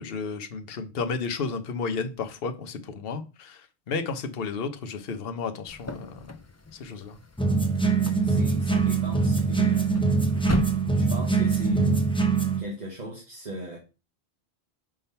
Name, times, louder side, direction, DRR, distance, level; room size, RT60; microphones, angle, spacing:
voice 1, 0.0-3.6 3.9-6.2 6.8-7.2, left 4 dB, 65° left, 1.0 m, -32 dB
sound 1, 5.7-11.6, left 3 dB, 25° left, 0.4 m, -37 dB
sound 2, 7.4-12.6, right 4 dB, 5° left, 0.8 m, -23 dB
voice 2, 8.2-10.1 11.0-12.1 12.6-13.8, equal, 40° right, 1.5 m, -36 dB
5.6 x 3.6 x 5.5 m
omnidirectional pair, 1.1 m